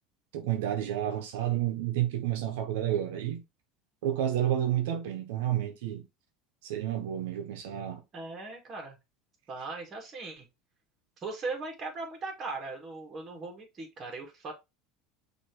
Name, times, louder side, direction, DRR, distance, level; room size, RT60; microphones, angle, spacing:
voice 1, 0.3-3.4 4.0-6.1 6.6-8.0, right 11 dB, 85° right, 0.9 m, -30 dB
voice 2, 8.1-9.0 9.5-10.5 11.2-14.5, right 3 dB, 30° right, 2.0 m, -39 dB
6.1 x 2.9 x 2.9 m
supercardioid pair, 130°, 0 cm